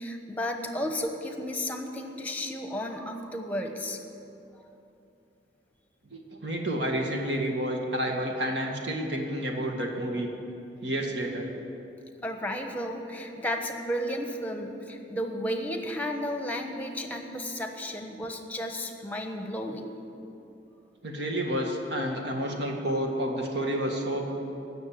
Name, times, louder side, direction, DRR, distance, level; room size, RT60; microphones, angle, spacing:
voice 1, 0.0-4.0 12.2-19.9, equal, 10° left, 5 dB, 1.1 m, -33 dB
voice 2, 6.1-10.3 10.8-11.5 21.0-24.3, right 1 dB, 70° right, 1 dB, 1.9 m, -30 dB
15.5 x 6.7 x 9.1 m, 2.7 s
head